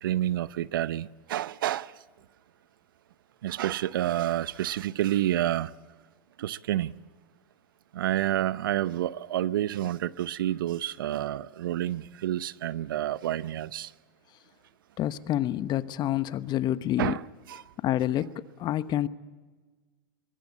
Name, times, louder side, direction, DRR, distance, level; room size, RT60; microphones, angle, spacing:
voice 1, 0.0-1.9 3.4-5.7 6.4-7.0 7.9-13.9 17.0-17.6, right 12 dB, 75° right, 0.7 m, -29 dB
voice 2, 15.0-17.1 17.8-18.3 18.6-19.1, left 13 dB, 40° left, 1.1 m, -27 dB
23.5 x 22.0 x 8.7 m
hypercardioid pair, 95°, 11 cm